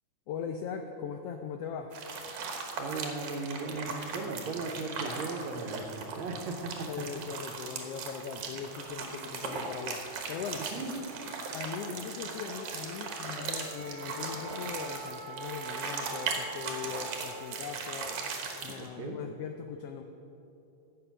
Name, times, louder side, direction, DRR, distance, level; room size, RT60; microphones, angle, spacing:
voice 1, 0.3-2.0 6.9-10.7 11.5-18.2 18.6-20.0, left 7 dB, 80° left, 6 dB, 1.4 m, -40 dB
sound 1, 1.9-18.9, right 4 dB, 90° right, 2.7 m, -38 dB
voice 2, 2.7-6.9 7.1-7.5 10.7-11.1 19.0-19.2, right 3 dB, 75° right, 3 dB, 2.2 m, -37 dB
Wind instrument woodwind instrument, 13.5-17.8, right 2 dB, 55° right, 1.5 m, -44 dB
14.5 x 7.8 x 6.0 m, 2.9 s
omnidirectional pair, 3.4 m